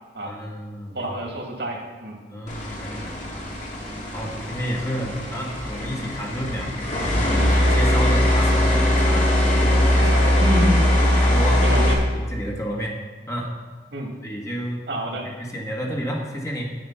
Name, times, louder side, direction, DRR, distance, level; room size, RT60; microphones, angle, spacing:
voice 1, 0.2-1.1 2.3-3.4 4.1-6.7 7.3-10.6 11.2-11.6 12.1-13.0 13.3-13.5 14.2-14.8 15.2-16.7, equal, 20° left, -2 dB, 1.5 m, -30 dB
voice 2, 0.9-2.2 10.4-10.8 11.6-12.0 13.9-14.1 14.9-15.3, equal, 70° right, 0 dB, 2.4 m, -27 dB
sound 1, 2.5-11.9, left 1 dB, 45° left, 2.1 m, -20 dB
9.1 x 8.8 x 5.7 m, 1.4 s
head